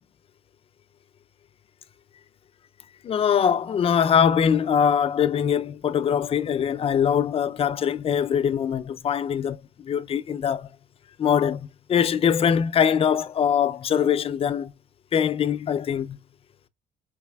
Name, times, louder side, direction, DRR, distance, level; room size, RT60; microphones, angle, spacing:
voice 1, 3.0-10.7 11.2-14.7 15.1-16.2, left 8 dB, 35° left, 0.4 m, -22 dB
4.5 x 4.1 x 2.3 m
cardioid pair, 110°, 17 cm